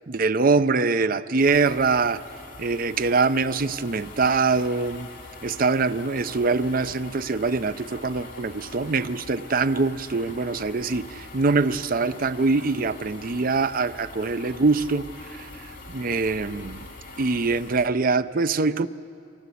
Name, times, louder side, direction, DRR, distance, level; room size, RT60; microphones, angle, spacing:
voice 1, 0.1-2.2 2.6-5.1 5.4-16.9 17.2-18.9, right 4 dB, 45° right, 13 dB, 0.6 m, -24 dB
sound 1, 1.4-17.9, left 2 dB, 45° left, 2.8 m, -43 dB
23.5 x 15.5 x 8.4 m, 2.4 s
head